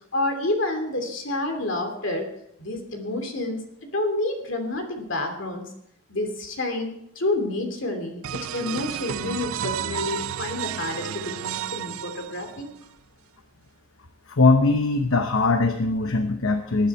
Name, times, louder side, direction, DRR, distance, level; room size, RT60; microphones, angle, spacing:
voice 1, 0.1-2.3 2.6-5.7 6.1-12.7, left 2 dB, 60° left, 4 dB, 2.9 m, -29 dB
sound 1, 8.2-12.8, right 10 dB, 80° right, 0.4 m, -32 dB
voice 2, 14.3-16.9, left 3 dB, 75° left, 7 dB, 0.9 m, -21 dB
19.5 x 10.0 x 4.5 m, 0.73 s
head